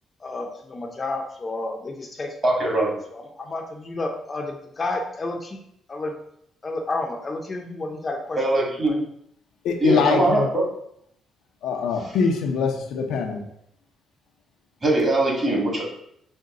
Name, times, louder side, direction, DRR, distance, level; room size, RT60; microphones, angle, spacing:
voice 1, 0.2-2.3 3.1-5.6 5.9-6.1 6.6-8.4 8.9-9.0, left 2 dB, 35° left, 2 dB, 0.6 m, -31 dB
voice 2, 2.4-2.9 8.4-9.0 9.8-10.6 14.8-15.8, right 2 dB, 35° right, -2 dB, 1.7 m, -21 dB
voice 3, 9.6-10.5 11.6-13.4, left 5 dB, 85° left, 2 dB, 0.6 m, -23 dB
5.2 x 2.2 x 3.7 m, 0.72 s
cardioid pair, 90°, 0 cm